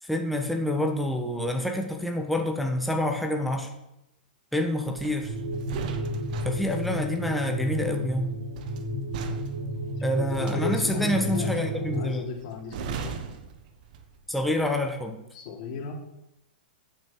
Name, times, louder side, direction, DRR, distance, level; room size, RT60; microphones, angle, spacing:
voice 1, 0.0-3.7 4.5-5.3 6.4-8.4 10.0-12.3 14.3-15.2, left 1 dB, ahead, 3 dB, 1.2 m, -27 dB
sound 1, 5.0-14.3 14.6-14.9, right 6 dB, 55° right, 1.4 m, -40 dB
sound 2, 5.2-12.1, right 1 dB, 75° right, 2.9 m, -32 dB
voice 2, 10.1-13.2 15.3-15.9, left 4 dB, 50° left, 1 dB, 3.0 m, -35 dB
8.9 x 8.0 x 6.1 m, 0.86 s
hypercardioid pair, 125°, 5 cm